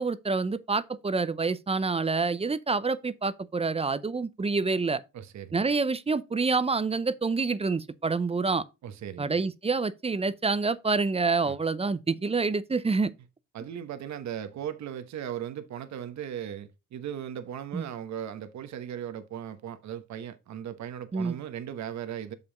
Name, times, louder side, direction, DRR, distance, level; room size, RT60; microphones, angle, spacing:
voice 1, 0.0-5.0 5.5-8.6 9.2-13.1 17.7-17.8 21.1-21.4, right 4 dB, 20° right, 0.6 m, -27 dB
voice 2, 5.1-5.7 8.8-9.3 11.4-11.5 13.5-22.3, right 9 dB, 65° right, 1.1 m, -37 dB
6.8 x 5.4 x 3.8 m
cardioid pair, 90°, 30 cm